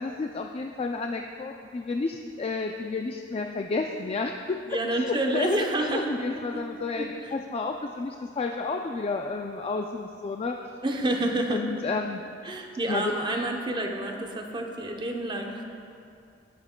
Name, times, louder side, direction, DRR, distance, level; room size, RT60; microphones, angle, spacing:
voice 1, 0.0-4.6 4.9-10.6 11.5-12.2 12.9-13.1, left 3 dB, 30° left, 3 dB, 0.3 m, -31 dB
voice 2, 4.7-6.6 7.0-7.1 10.8-11.6 12.4-15.6, right 1 dB, 25° right, 2 dB, 0.7 m, -29 dB
17.0 x 7.2 x 2.2 m, 2.5 s
head